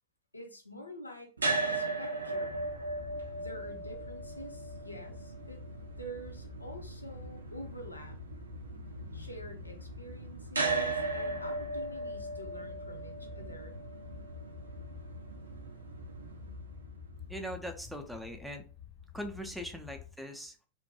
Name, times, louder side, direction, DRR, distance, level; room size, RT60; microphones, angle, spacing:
voice 1, 0.3-2.7 3.3-5.6 6.0-8.2 9.1-13.8, equal, 85° left, 3 dB, 0.5 m, -47 dB
sound 1, 1.4-17.5, right 3 dB, 75° right, 0.4 m, -38 dB
sound 2, 2.5-20.1, left 10 dB, 50° left, 0.7 m, -49 dB
voice 2, 17.3-18.7 19.1-20.6, equal, 5° right, 4 dB, 0.4 m, -41 dB
2.5 x 2.1 x 2.8 m, 0.36 s
figure-of-eight pair, 90°, 0 cm